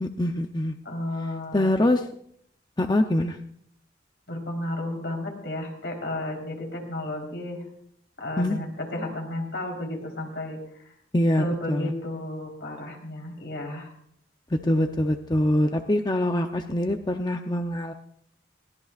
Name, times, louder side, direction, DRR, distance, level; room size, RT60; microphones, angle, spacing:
voice 1, 0.0-0.8 1.5-2.0 2.8-3.4 8.4-8.6 11.1-11.9 14.5-17.9, left 1 dB, 25° left, 5 dB, 0.7 m, -24 dB
voice 2, 0.8-1.8 4.3-7.7 8.2-10.9 11.4-13.9, left 1 dB, 75° left, 1 dB, 3.9 m, -33 dB
21.5 x 16.5 x 2.5 m, 0.67 s
head